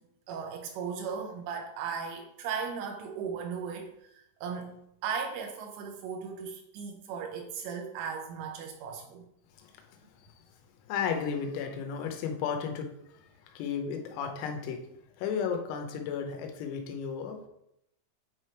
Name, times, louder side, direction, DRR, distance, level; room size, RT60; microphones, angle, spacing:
voice 1, 0.3-4.8 5.0-9.2, right 6 dB, 85° right, 2 dB, 3.1 m, -37 dB
voice 2, 10.9-14.9 15.2-17.4, left 6 dB, 85° left, 3 dB, 3.6 m, -34 dB
9.0 x 3.3 x 4.4 m, 0.79 s
omnidirectional pair, 6.0 m